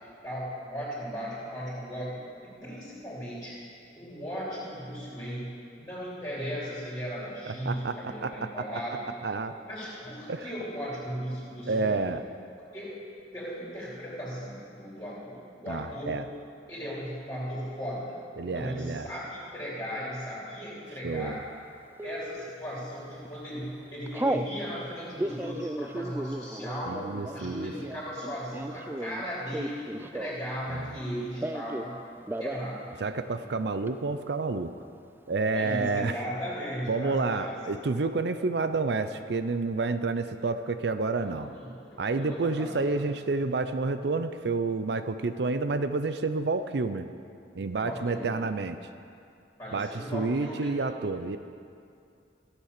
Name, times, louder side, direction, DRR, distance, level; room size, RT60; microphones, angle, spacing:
voice 1, 0.0-3.5 4.0-9.1 9.6-12.0 12.7-12.9 13.3-16.1 16.7-21.4 22.0-27.0 27.3-32.0 32.4-32.9 33.4-33.6 35.5-37.6 41.1-43.2 47.8-48.2 49.6-50.8, equal, 20° left, -10 dB, 3.1 m, -37 dB
voice 2, 7.5-8.6 9.2-9.5 10.3-10.5 11.7-12.2 15.7-16.2 18.4-19.1 21.0-21.4 26.9-27.7 30.7-31.0 33.0-34.7 35.3-36.1 36.9-41.5 42.0-47.1 47.5-48.8 49.7-51.4, right 3 dB, 65° right, 10 dB, 0.5 m, -29 dB
Telephone, 22.0-22.5 23.1-23.3 23.6-24.5 25.0-30.6 30.8-31.9 32.2-32.7 33.0-33.1 33.3-33.9, right 1 dB, 10° right, 0.3 m, -34 dB
14.5 x 8.3 x 6.6 m, 2.5 s
head